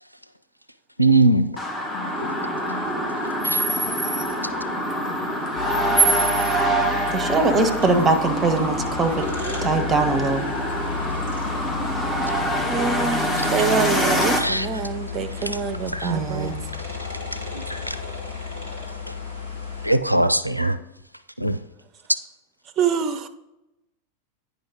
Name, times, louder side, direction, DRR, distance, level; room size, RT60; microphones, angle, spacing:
voice 1, 1.0-1.5 3.5-3.6 14.4-14.7 15.9-16.1 17.5-17.6 19.8-20.8 21.4-21.6, right 2 dB, 90° right, 12 dB, 0.4 m, -19 dB
sound 1, 1.6-14.4, right 1 dB, 10° left, 1.1 m, -24 dB
sound 2, 5.5-19.9, left 5 dB, 65° left, 1.9 m, -33 dB
voice 2, 7.1-9.2 9.6-10.5 16.0-16.6, right 3 dB, 15° right, 5 dB, 1.0 m, -21 dB
voice 3, 12.7-16.5 22.8-23.3, right 6 dB, 30° right, 10 dB, 0.6 m, -26 dB
9.4 x 5.4 x 3.7 m, 0.94 s
figure-of-eight pair, 90°, 0 cm